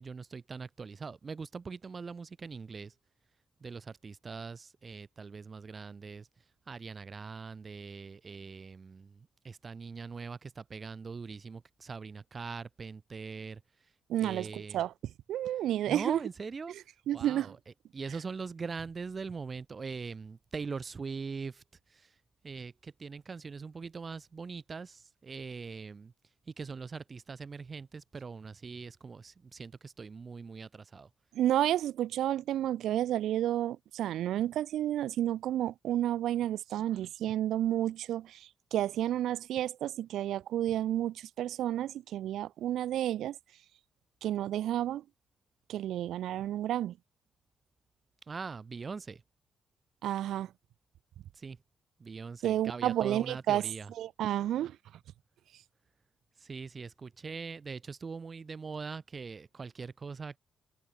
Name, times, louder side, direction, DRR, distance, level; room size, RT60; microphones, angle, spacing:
voice 1, 0.0-2.9 3.6-6.3 6.7-13.6 14.2-14.8 15.9-16.7 17.1-17.6 17.9-21.6 21.9-22.1 22.4-26.1 26.5-31.1 48.3-49.2 51.3-51.6 52.0-53.9 56.4-60.4, right 5 dB, 25° right, 6.8 m, -42 dB
voice 2, 14.1-14.9 15.3-16.2 17.1-17.5 31.3-43.4 44.2-45.0 45.7-46.9 50.0-50.5 52.4-53.6 54.0-54.8, right 12 dB, 80° right, 2.3 m, -31 dB
cardioid pair, 160°, 0 cm